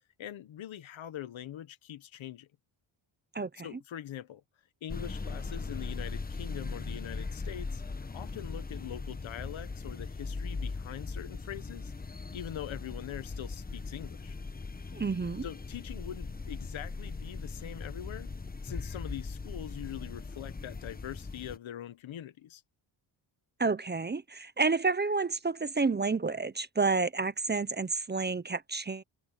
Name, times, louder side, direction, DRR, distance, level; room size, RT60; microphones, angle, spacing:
voice 1, 0.2-2.5 3.6-4.4 4.8-7.8 8.1-11.9 12.3-14.4 15.4-18.3 18.6-22.6, left 11 dB, 80° left, 1.4 m, -43 dB
voice 2, 3.3-3.7 14.9-15.4 23.6-29.0, right 4 dB, 20° right, 0.8 m, -30 dB
sound 1, 4.9-21.6, left 3 dB, 20° left, 1.1 m, -39 dB
cardioid pair, 105°, 47 cm